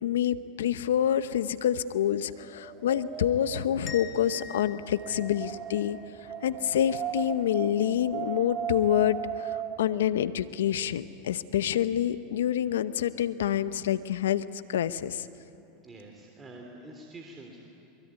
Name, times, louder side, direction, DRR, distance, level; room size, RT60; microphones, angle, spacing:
voice 1, 0.0-6.0 6.4-15.3, left 10 dB, 80° left, 14 dB, 0.9 m, -27 dB
Wind, 2.1-10.0, right 9 dB, 45° right, 1.5 m, -38 dB
sound 1, 3.9-6.6, left 7 dB, 30° left, 1.8 m, -46 dB
voice 2, 15.8-17.7, right 2 dB, 20° right, 1 dB, 3.2 m, -46 dB
23.5 x 23.0 x 9.7 m, 2.8 s
hypercardioid pair, 100°, 0 cm